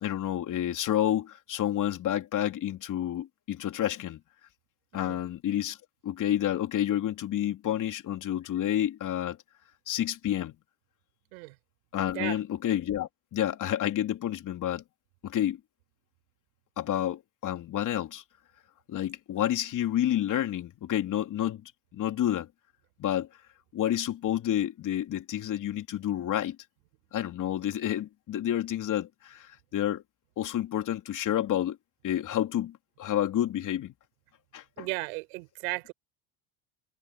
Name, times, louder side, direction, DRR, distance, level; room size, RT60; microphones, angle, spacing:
voice 1, 0.0-4.2 4.9-5.8 6.0-9.4 9.9-10.5 11.9-14.8 15.2-15.6 16.8-18.2 18.9-22.5 23.0-23.3 23.7-26.6 27.1-30.0 30.4-31.8 32.0-33.9 34.5-34.9, left 11 dB, 45° left, 3.3 m, -29 dB
voice 2, 34.8-35.9, right 25 dB, 85° right, 4.8 m, -34 dB
supercardioid pair, 115°, 42 cm